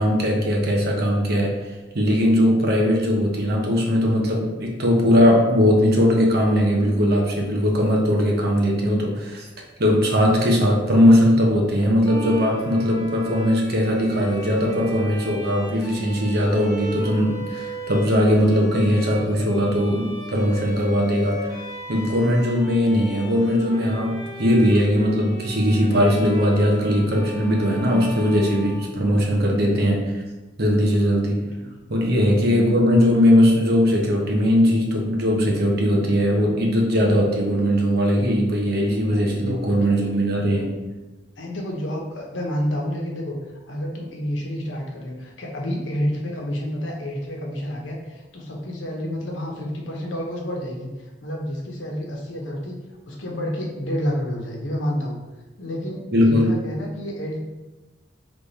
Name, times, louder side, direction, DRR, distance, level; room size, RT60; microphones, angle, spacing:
voice 1, 0.0-9.5 9.8-21.6 21.9-30.2 30.6-31.5 31.9-40.7 56.1-56.6, equal, 55° right, -1 dB, 0.9 m, -19 dB
Bowed string instrument, 12.0-29.5, left 1 dB, 20° left, 0.8 m, -37 dB
voice 2, 38.8-39.7 41.4-43.4 43.7-52.8 53.1-55.2 55.6-57.4, equal, 80° left, -1 dB, 1.0 m, -29 dB
3.5 x 3.3 x 4.1 m, 1.1 s
head